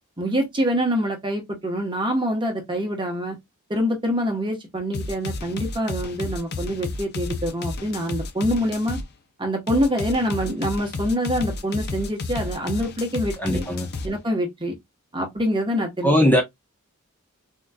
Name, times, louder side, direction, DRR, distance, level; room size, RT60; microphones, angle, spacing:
voice 1, 0.2-3.4 3.7-9.0 9.4-13.6 14.0-14.7 15.1-16.3, equal, 20° right, 1.0 m, -25 dB
sound 1, 4.9-9.1 9.7-14.1, left 3 dB, 50° left, 0.6 m, -31 dB
voice 2, 13.4-13.9 16.0-16.4, left 1 dB, 10° left, 0.7 m, -19 dB
3.7 x 3.0 x 2.2 m
head